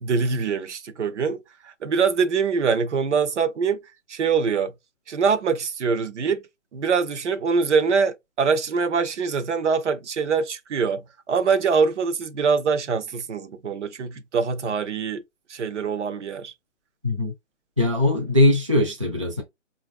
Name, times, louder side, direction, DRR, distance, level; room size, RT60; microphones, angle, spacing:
voice 1, 0.0-1.4 1.6-3.8 4.1-4.7 5.1-6.4 6.7-15.2 15.5-16.5, right 5 dB, 65° right, 0.6 m, -24 dB
voice 2, 17.8-19.4, left 2 dB, 25° right, 0.4 m, -20 dB
4.5 x 2.5 x 2.2 m
hypercardioid pair, 175°, 38 cm